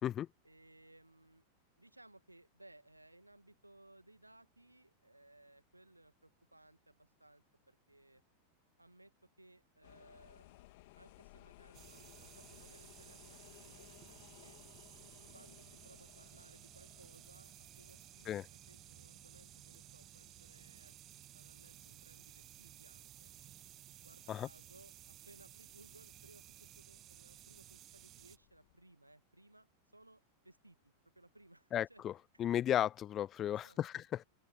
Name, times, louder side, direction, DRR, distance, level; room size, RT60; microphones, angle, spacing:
voice 1, 0.4-1.5 1.8-8.2 8.8-10.7 11.0-14.6 15.3-21.0 21.3-23.3 24.0-29.7 29.9-32.0 32.3-32.4 33.5-33.8, right 1 dB, 85° right, 2.0 m, -63 dB
sound 1, 9.8-28.8, left 22 dB, 50° left, 2.7 m, -63 dB
sound 2, 11.7-28.4, right 14 dB, 35° right, 2.4 m, -57 dB
voice 2, 31.7-32.1 32.4-34.2, left 11 dB, 30° left, 0.4 m, -34 dB
open air
figure-of-eight pair, 90°, 0 cm